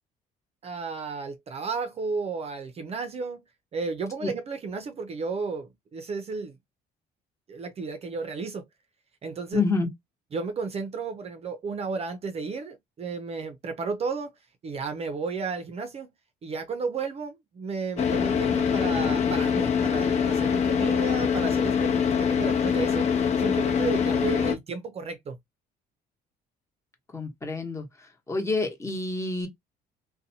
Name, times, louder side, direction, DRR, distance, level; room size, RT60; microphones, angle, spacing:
voice 1, 0.6-3.4 3.7-6.5 7.5-8.6 9.2-9.6 10.3-14.3 14.6-16.1 16.4-23.1 23.4-25.4, right 4 dB, 35° right, 0.5 m, -33 dB
voice 2, 9.5-9.9 27.1-27.8 28.3-29.5, left 3 dB, 15° left, 1.0 m, -27 dB
Car / Idling, 18.0-24.6, left 7 dB, 40° left, 0.8 m, -24 dB
2.5 x 2.2 x 2.7 m
cardioid pair, 110°, 17 cm